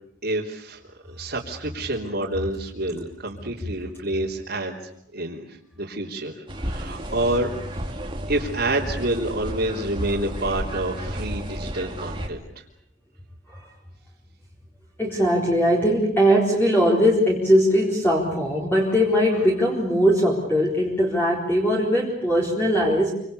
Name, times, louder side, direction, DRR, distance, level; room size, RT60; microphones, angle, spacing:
voice 1, 0.2-0.8 1.1-4.7 5.1-7.6 8.3-12.6, right 1 dB, 55° right, -5 dB, 3.4 m, -28 dB
sound 1, 6.5-12.3, equal, 25° right, 2.7 m, -32 dB
voice 2, 15.0-23.1, equal, 10° left, -3 dB, 4.1 m, -20 dB
28.5 x 25.5 x 6.9 m, 0.73 s
head